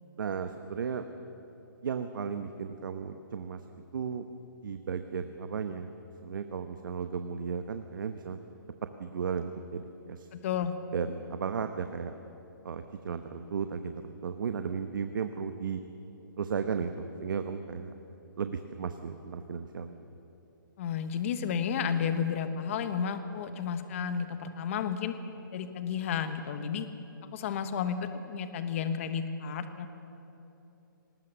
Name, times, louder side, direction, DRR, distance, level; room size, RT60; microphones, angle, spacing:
voice 1, 0.2-1.1 1.8-3.6 3.9-4.3 4.6-5.9 6.2-8.4 9.0-10.3 10.9-12.1 12.6-15.8 16.4-17.9 18.4-20.1, right 6 dB, 65° right, 8 dB, 1.0 m, -35 dB
voice 2, 10.3-10.7 20.8-25.1 25.5-26.9 27.3-29.9, left 7 dB, 35° left, 10 dB, 1.2 m, -32 dB
19.5 x 19.0 x 7.0 m, 3.0 s
hypercardioid pair, 160°, 12 cm